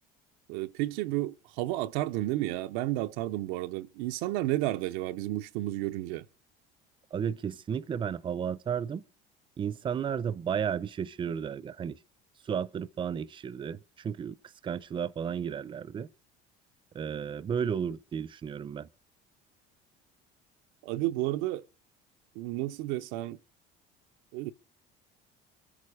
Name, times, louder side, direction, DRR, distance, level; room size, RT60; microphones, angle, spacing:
voice 1, 0.5-6.2 20.8-21.6 22.4-23.4 24.3-24.5, right 16 dB, 85° right, 0.7 m, -32 dB
voice 2, 7.1-9.0 9.6-12.0 12.5-14.4 14.6-16.1 16.9-18.9, right 7 dB, 25° right, 0.6 m, -33 dB
23.5 x 8.7 x 4.9 m
cardioid pair, 130°, 20 cm